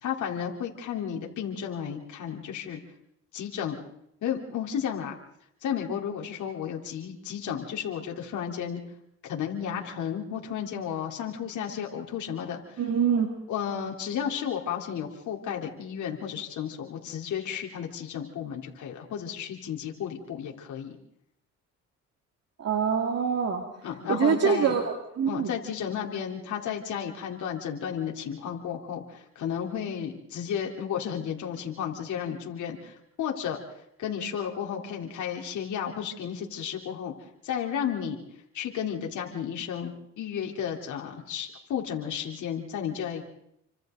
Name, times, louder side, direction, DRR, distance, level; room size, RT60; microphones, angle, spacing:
voice 1, 0.0-2.8 3.3-3.8 4.2-5.2 5.6-8.8 9.2-12.8 13.5-21.0 23.8-24.7 25.3-33.6 34.0-37.1 37.4-38.2 38.5-43.2, left 8 dB, 75° left, 0 dB, 3.7 m, -33 dB
voice 2, 12.8-13.3 22.6-23.6 24.1-25.5, right 7 dB, 55° right, 3 dB, 2.5 m, -25 dB
29.0 x 25.5 x 4.0 m, 0.75 s
cardioid pair, 90°, 30 cm